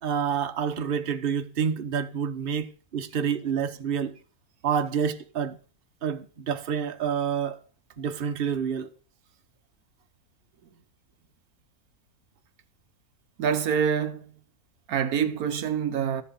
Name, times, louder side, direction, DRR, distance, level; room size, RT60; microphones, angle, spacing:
voice 1, 0.0-4.2 4.6-5.6 6.0-7.6 8.0-8.9, right 7 dB, 40° right, 1.1 m, -28 dB
voice 2, 13.4-14.2 14.9-16.2, right 7 dB, 75° right, 1.3 m, -26 dB
12.5 x 7.2 x 5.4 m
omnidirectional pair, 1.6 m